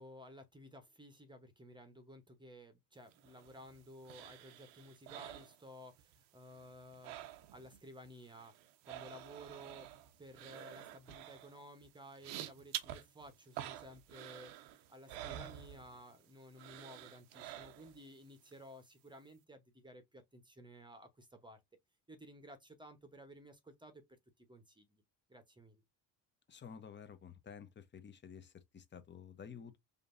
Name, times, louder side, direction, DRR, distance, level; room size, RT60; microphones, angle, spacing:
voice 1, 0.0-8.5 8.8-9.9 10.2-21.6 22.1-24.0 24.4-25.0 25.3-25.8, equal, 10° right, 0.9 m, -55 dB
sound 1, 3.1-6.2 6.4-7.8 8.0-16.2 16.6-18.1 18.5-18.6, right 12 dB, 85° right, 0.8 m, -49 dB
voice 2, 26.5-29.8, left 7 dB, 25° left, 0.7 m, -52 dB
5.1 x 2.7 x 2.5 m
supercardioid pair, 100°, 45 cm